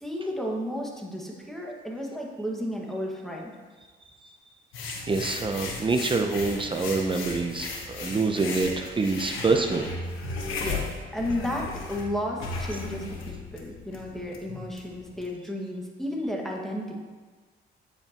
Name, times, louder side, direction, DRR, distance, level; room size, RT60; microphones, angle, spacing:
voice 1, 0.0-3.5 10.6-10.9 11.1-17.0, left 1 dB, ahead, -2 dB, 1.7 m, -33 dB
sound 1, 4.7-15.3, left 3 dB, 90° left, 1.3 m, -36 dB
voice 2, 5.1-9.9, right 3 dB, 25° right, 5 dB, 0.7 m, -26 dB
9.2 x 8.1 x 3.0 m, 1.4 s
cardioid pair, 90°, 20 cm